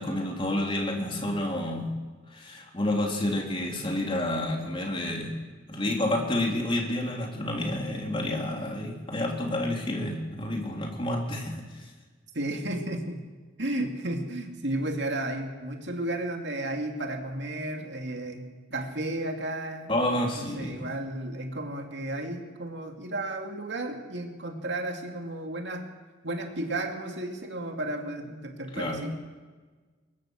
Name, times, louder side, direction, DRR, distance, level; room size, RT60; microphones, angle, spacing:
voice 1, 0.0-1.9 2.3-5.3 5.7-11.7 19.9-20.9 28.7-29.0, left 1 dB, 30° left, 0 dB, 3.6 m, -29 dB
voice 2, 12.3-13.2 13.6-25.9 26.2-29.1, right 1 dB, 65° right, 3 dB, 2.6 m, -33 dB
22.5 x 21.5 x 6.5 m, 1.4 s
head